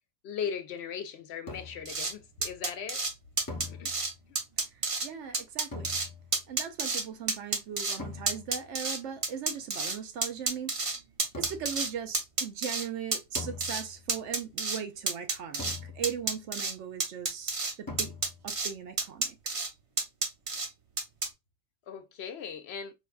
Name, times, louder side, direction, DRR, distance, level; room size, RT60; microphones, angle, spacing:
voice 1, 0.2-3.0 3.7-3.9 4.3-4.4 21.9-22.9, left 7 dB, 70° left, 0.9 m, -38 dB
sound 1, 1.5-2.0 3.5-4.3 5.7-6.5 8.0-8.7 11.3-11.9 13.4-14.2 15.6-16.4 17.9-18.6, left 3 dB, 25° left, 0.6 m, -43 dB
sound 2, 1.9-2.1 2.4-3.1 3.4-4.1 4.4-5.1 5.3-6.1 6.3-7.0 7.3-8.0 8.3-10.0 10.2-11.9 12.1-12.9 13.1-13.8 14.1-14.8 15.1-15.8 16.0-16.7 17.0-17.7 18.0-18.7 19.0-19.7 20.0-20.7 21.0-21.3, right 3 dB, 35° right, 0.6 m, -30 dB
voice 2, 4.7-5.9 6.5-10.7 11.4-18.1 18.4-19.4, right 8 dB, 85° right, 1.0 m, -39 dB
4.7 x 2.3 x 2.3 m
omnidirectional pair, 1.2 m